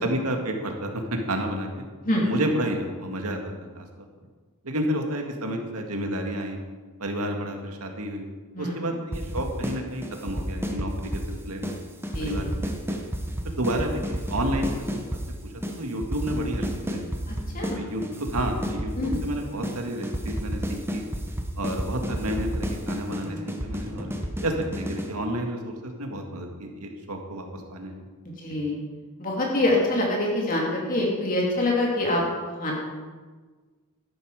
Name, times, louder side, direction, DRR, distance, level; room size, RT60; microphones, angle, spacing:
voice 1, 0.0-1.8 2.2-3.8 4.6-6.6 7.0-8.2 8.6-11.8 12.2-13.1 13.4-15.0 15.4-17.0 17.7-21.0 21.6-24.1 24.4-28.1 28.5-28.6, right 1 dB, 85° right, 3 dB, 2.0 m, -30 dB
voice 2, 8.5-8.9 12.1-12.4 17.5-17.8 19.0-19.2 28.4-28.8 29.2-32.2 32.6-32.7, left 1 dB, 40° left, -2 dB, 2.8 m, -25 dB
sound 1, 9.1-9.8 10.0-11.3 11.6-11.8 12.0-15.2 15.6-15.7 16.0-17.8 18.0-19.3 19.6-19.8 20.0-25.1, equal, 10° right, 1.1 m, -30 dB
13.0 x 11.5 x 4.9 m, 1.4 s
head